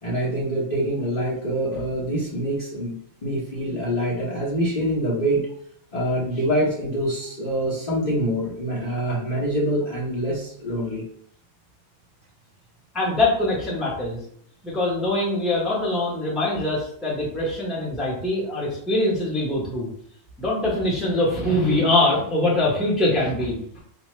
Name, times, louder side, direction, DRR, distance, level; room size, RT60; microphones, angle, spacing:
voice 1, 0.0-2.9 3.2-5.4 5.9-11.0, right 1 dB, 35° left, -8 dB, 0.9 m, -25 dB
voice 2, 12.9-14.2 14.6-19.9 20.4-23.8, left 2 dB, ahead, -5 dB, 0.8 m, -23 dB
4.0 x 2.3 x 3.1 m, 0.65 s
omnidirectional pair, 1.5 m